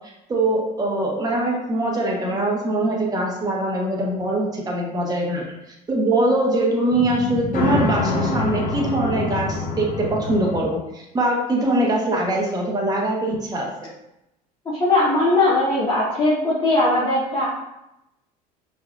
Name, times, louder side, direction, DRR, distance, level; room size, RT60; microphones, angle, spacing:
voice 1, 0.3-5.4 5.9-13.7, right 1 dB, 20° right, -2 dB, 1.0 m, -22 dB
sound 1, 6.9-10.6, left 3 dB, 45° left, 0.8 m, -25 dB
voice 2, 14.6-17.5, left 2 dB, 25° left, -8 dB, 1.3 m, -19 dB
5.7 x 2.7 x 2.5 m, 0.87 s
supercardioid pair, 85°, 19 cm